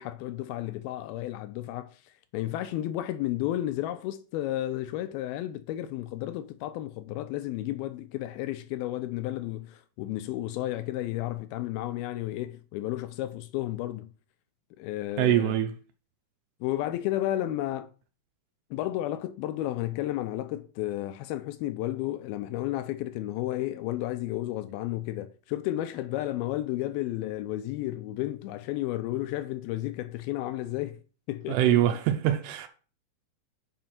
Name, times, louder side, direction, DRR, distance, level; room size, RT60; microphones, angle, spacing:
voice 1, 0.0-2.0 2.3-14.1 14.8-15.6 16.6-17.9 18.7-31.0 31.3-32.0, left 14 dB, 80° left, 2.4 m, -32 dB
voice 2, 15.2-15.7 31.5-32.7, right 12 dB, 85° right, 2.9 m, -23 dB
7.6 x 5.0 x 5.8 m
omnidirectional pair, 4.7 m